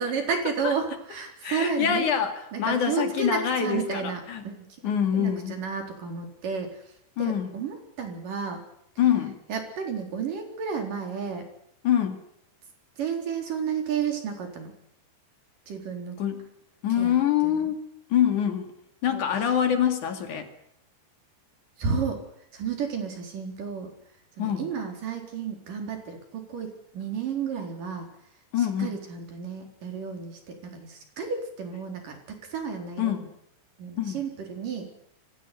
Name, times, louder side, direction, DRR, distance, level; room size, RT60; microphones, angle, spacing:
voice 1, 0.0-2.1 2.5-4.8 5.1-8.6 9.5-11.5 13.0-14.7 15.7-16.2 17.0-17.7 19.1-19.5 21.8-22.2 22.5-23.9 24.4-28.1 28.6-33.2 33.8-34.9, right 6 dB, 45° right, 4 dB, 5.3 m, -32 dB
voice 2, 1.4-4.4 4.8-5.5 7.2-7.6 9.0-9.4 11.8-12.2 16.2-16.5 16.8-17.8 18.1-18.7 19.0-20.5 24.4-24.7 28.5-29.0 33.0-33.3 34.0-34.2, left 9 dB, 50° left, 7 dB, 3.3 m, -25 dB
25.0 x 15.5 x 9.6 m, 0.72 s
omnidirectional pair, 5.3 m